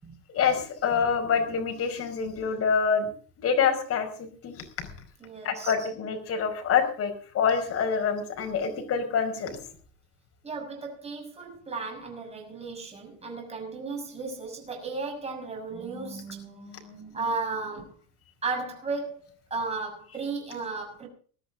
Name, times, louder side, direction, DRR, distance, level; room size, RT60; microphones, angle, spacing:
voice 1, 0.3-3.1 3.4-4.9 5.4-9.6, left 6 dB, 35° left, 5.2 m, -26 dB
voice 2, 5.2-5.7 10.4-17.9 18.4-21.1, right 4 dB, 15° right, 6.6 m, -35 dB
20.5 x 13.0 x 3.8 m
cardioid pair, 145°, 39 cm